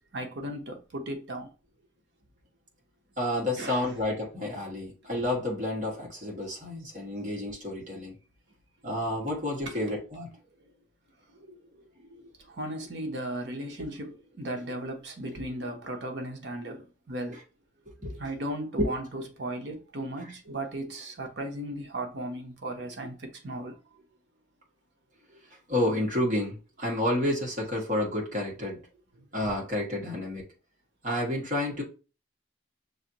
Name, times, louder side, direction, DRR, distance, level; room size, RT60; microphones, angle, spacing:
voice 1, 0.1-1.5 3.6-3.9 9.7-9.8 11.5-11.6 12.0-12.2 12.5-17.4 18.2-23.8, right 1 dB, 65° right, 0.9 m, -36 dB
voice 2, 3.2-8.2 8.8-10.3 13.8-13.9 15.3-15.4 17.9-18.2 18.8-18.9 20.5-20.6 25.7-28.8 29.3-30.4 31.0-31.8, left 1 dB, 40° right, 1.7 m, -30 dB
6.3 x 2.6 x 2.9 m
head